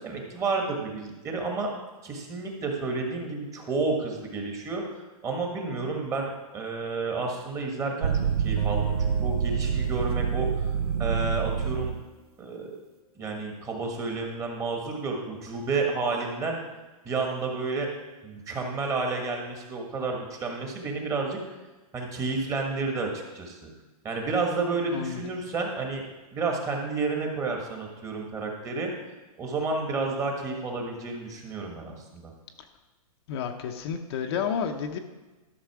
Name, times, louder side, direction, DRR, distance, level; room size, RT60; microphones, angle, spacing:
voice 1, 0.0-1.7 2.0-10.7 11.0-11.9 12.4-12.7 13.2-16.6 17.0-17.9 18.2-21.4 21.9-23.7 24.0-26.0 26.3-28.9 29.4-32.3, right 3 dB, 15° right, 1 dB, 1.5 m, -31 dB
sound 1, 8.0-12.0, right 7 dB, 85° right, 0.6 m, -27 dB
Acoustic guitar, 8.6-11.8, left 3 dB, 10° left, 1.0 m, -45 dB
voice 2, 33.3-35.0, left 7 dB, 45° left, 5 dB, 0.8 m, -30 dB
12.5 x 6.4 x 4.7 m, 1.2 s
hypercardioid pair, 150°, 19 cm